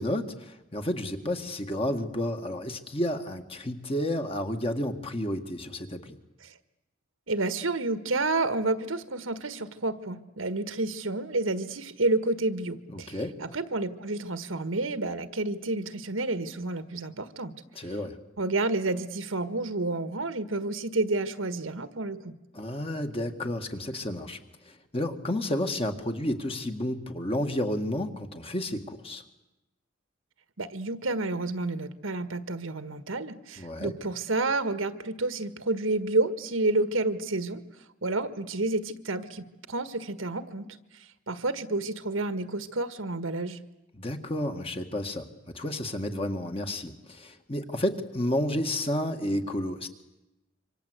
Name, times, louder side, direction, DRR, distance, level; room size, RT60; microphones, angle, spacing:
voice 1, 0.0-6.2 12.9-13.3 17.8-18.2 22.5-24.4 24.7-29.2 33.6-33.9 43.9-45.3 45.5-49.9, left 1 dB, 30° left, 6 dB, 2.0 m, -31 dB
voice 2, 7.3-17.5 18.4-22.3 30.6-37.6 38.0-40.8 41.3-43.6, right 2 dB, 90° right, 12 dB, 1.6 m, -30 dB
27.0 x 25.0 x 8.2 m, 0.98 s
head